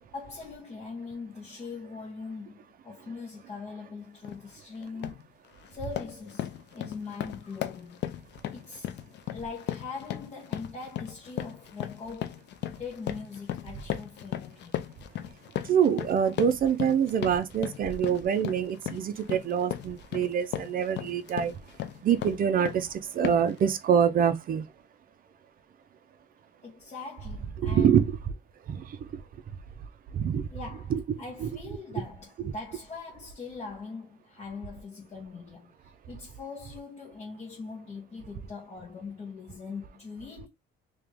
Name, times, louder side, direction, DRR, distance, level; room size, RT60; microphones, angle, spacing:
voice 1, 0.1-5.2 5.7-8.1 8.5-8.9 9.3-12.4 12.8-14.8 26.6-28.0 30.5-35.7 36.1-40.5, left 4 dB, 30° left, 1.4 m, -41 dB
sound 1, 4.2-4.4 4.8-5.3 5.6-22.9 23.2-23.6, left 11 dB, 60° left, 0.6 m, -36 dB
voice 2, 15.6-21.5 22.0-24.6 27.6-28.2 28.7-29.2 30.1-30.5 30.9-31.0 31.4-31.5 32.4-32.5, right 8 dB, 45° right, 0.6 m, -25 dB
3.3 x 3.0 x 3.5 m
cardioid pair, 130°, 20 cm